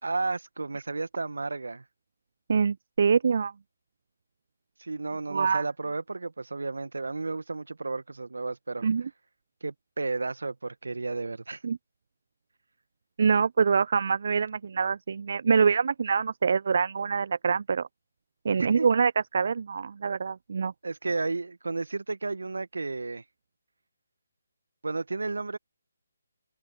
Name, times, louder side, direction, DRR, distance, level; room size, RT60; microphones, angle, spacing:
voice 1, 0.0-1.8 4.8-8.9 9.6-11.6 18.5-18.9 20.8-23.2 24.8-25.6, right 3 dB, 70° right, 2.0 m, -32 dB
voice 2, 2.5-3.5 5.3-5.6 8.8-9.0 11.6-11.8 13.2-17.9 18.4-20.7, right 5 dB, 55° right, 0.7 m, -25 dB
figure-of-eight pair, 145°, 0 cm